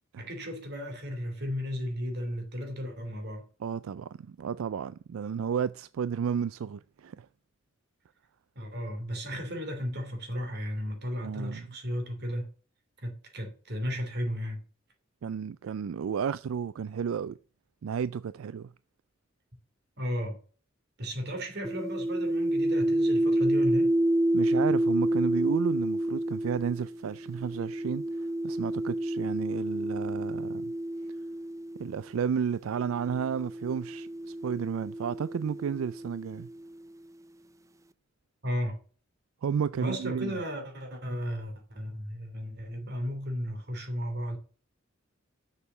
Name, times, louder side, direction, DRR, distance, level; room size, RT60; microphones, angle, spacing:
voice 1, 0.2-3.5 8.5-12.5 13.0-14.6 20.0-20.4 21.0-23.9 38.4-38.8 39.8-44.4, equal, 55° right, 3.0 m, -34 dB
voice 2, 3.6-7.3 11.2-11.6 15.2-17.4 17.8-18.7 24.3-30.7 31.8-36.5 39.4-40.4, right 7 dB, 85° right, 0.4 m, -32 dB
sound 1, 21.6-32.0 32.9-36.7, right 1 dB, 15° right, 0.4 m, -29 dB
6.9 x 6.7 x 6.9 m
head